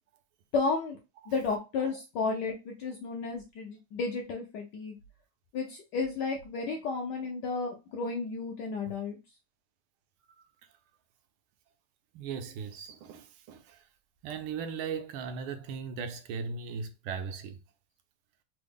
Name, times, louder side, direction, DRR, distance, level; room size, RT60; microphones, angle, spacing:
voice 1, 0.5-1.0 1.3-5.0 5.5-9.1, left 4 dB, 75° left, 1.0 m, -32 dB
voice 2, 12.1-13.8 14.2-17.6, right 6 dB, 80° right, 1.4 m, -38 dB
3.7 x 2.0 x 3.4 m
omnidirectional pair, 2.4 m